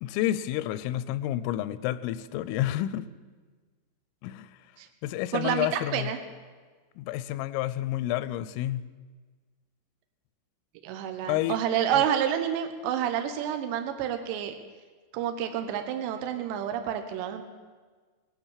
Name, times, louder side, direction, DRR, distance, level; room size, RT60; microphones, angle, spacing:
voice 1, 0.0-3.1 4.2-4.5 5.0-6.1 7.0-8.8 11.3-11.6, left 14 dB, 90° left, 15 dB, 3.2 m, -29 dB
voice 2, 5.3-6.2 10.8-14.6 15.1-17.4, right 9 dB, 75° right, 7 dB, 2.8 m, -29 dB
19.0 x 9.8 x 7.3 m, 1.4 s
omnidirectional pair, 5.8 m